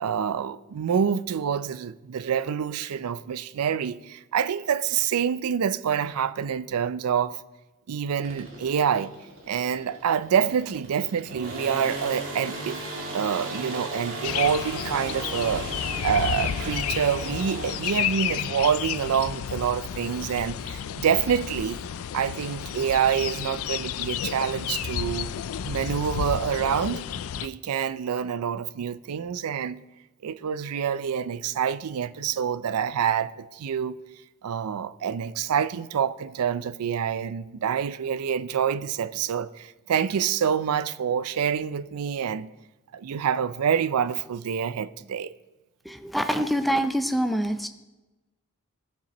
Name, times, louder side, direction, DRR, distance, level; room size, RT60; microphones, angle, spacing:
voice 1, 0.0-7.4 7.9-9.1 9.5-12.8 13.1-21.8 22.1-25.3 25.7-27.0 27.4-29.8 30.2-34.0 34.4-42.5 42.9-45.3, right 8 dB, 90° right, 0.4 m, -27 dB
sound 1, 8.2-18.2, right 2 dB, 65° right, 2.0 m, -37 dB
sound 2, 14.2-27.5, left 9 dB, 70° left, 0.3 m, -31 dB
voice 2, 45.9-47.7, equal, ahead, 0.5 m, -25 dB
16.0 x 7.1 x 3.0 m
head